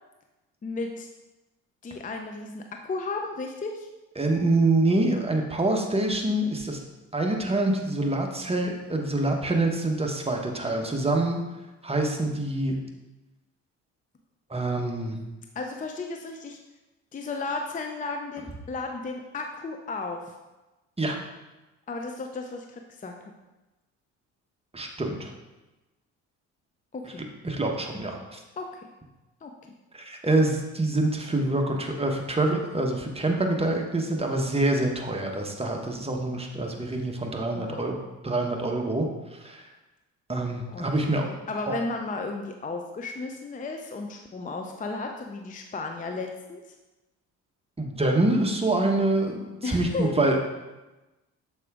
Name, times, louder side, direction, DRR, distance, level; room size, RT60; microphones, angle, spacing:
voice 1, 0.6-1.1 1.8-3.9 15.5-16.6 17.1-20.3 21.9-23.3 26.9-27.2 28.6-28.8 29.4-29.7 37.5-37.9 40.7-40.9 41.1-46.7 49.6-50.2, left 3 dB, 20° left, 4 dB, 0.6 m, -34 dB
voice 2, 4.2-6.8 7.1-11.4 11.8-12.8 14.5-15.2 21.0-21.2 24.7-25.3 27.0-27.1 27.4-28.4 29.9-37.9 38.2-39.7 40.3-41.3 41.7-41.8 47.8-50.4, right 2 dB, 15° right, 2 dB, 1.1 m, -26 dB
6.6 x 4.9 x 3.6 m, 1.1 s
hypercardioid pair, 55°, 39 cm